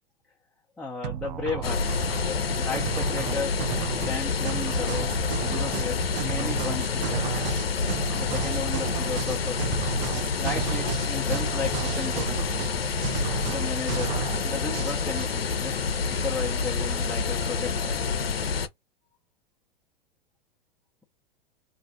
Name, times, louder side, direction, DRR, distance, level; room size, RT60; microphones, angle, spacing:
voice 1, 0.8-2.0 2.6-3.7 4.1-7.4 8.1-9.6 10.4-12.7 13.5-14.2 14.4-18.0, left 4 dB, ahead, 0.6 m, -35 dB
sound 1, 1.0-15.3, right 11 dB, 50° right, 0.5 m, -34 dB
sound 2, 1.6-18.7, left 5 dB, 85° left, 0.6 m, -28 dB
2.6 x 2.4 x 3.8 m
figure-of-eight pair, 100°, 29 cm